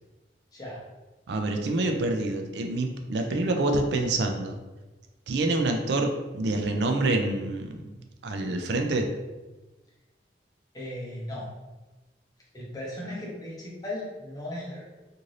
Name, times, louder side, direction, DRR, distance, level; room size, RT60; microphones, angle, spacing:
voice 1, 0.5-0.8 3.3-3.5 10.7-11.5 12.5-14.8, left 1 dB, 20° left, -5 dB, 0.7 m, -37 dB
voice 2, 1.3-4.6 5.3-7.9 8.2-9.1, right 2 dB, 75° right, 4 dB, 0.4 m, -27 dB
2.6 x 2.5 x 3.1 m, 1.1 s
head